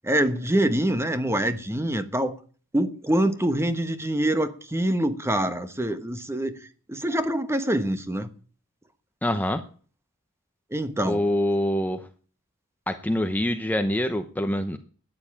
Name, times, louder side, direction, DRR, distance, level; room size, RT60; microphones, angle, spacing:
voice 1, 0.0-2.3 2.7-6.6 6.9-8.3 10.7-11.2, right 1 dB, 10° right, 1.1 m, -25 dB
voice 2, 9.2-9.6 11.0-12.1 12.9-14.8, left 1 dB, 10° left, 0.8 m, -25 dB
13.0 x 9.7 x 8.8 m
head